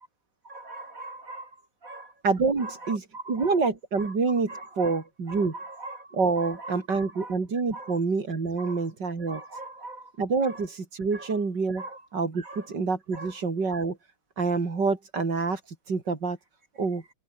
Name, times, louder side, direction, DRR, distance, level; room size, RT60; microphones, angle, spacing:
voice 1, 0.4-2.1 2.6-3.6 3.9-4.2 4.5-7.3 7.7-8.0 8.6-8.9 9.3-10.1 10.4-10.7 11.1-11.4 11.8-12.1 12.4-12.7 13.1-13.4, right 2 dB, 45° right, 6.7 m, -42 dB
voice 2, 2.2-3.0 3.3-5.5 6.2-9.4 10.2-11.8 12.1-14.0 14.4-15.6 15.9-16.4 16.8-17.0, right 4 dB, 70° right, 4.0 m, -27 dB
omnidirectional pair, 2.0 m